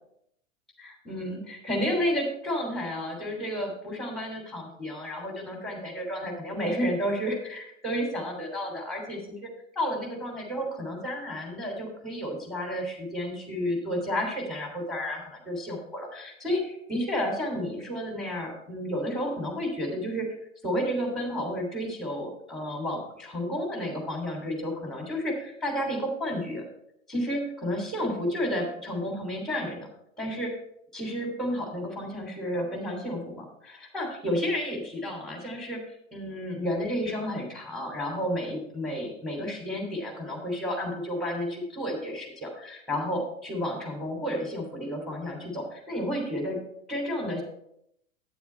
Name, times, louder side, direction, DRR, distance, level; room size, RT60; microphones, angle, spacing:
voice 1, 0.8-20.3 20.6-26.6 27.1-29.9 30.2-30.5 30.9-46.6 46.9-47.4, equal, ahead, 1 dB, 3.2 m, -31 dB
9.6 x 7.1 x 4.6 m, 0.75 s
figure-of-eight pair, 95°, 40 cm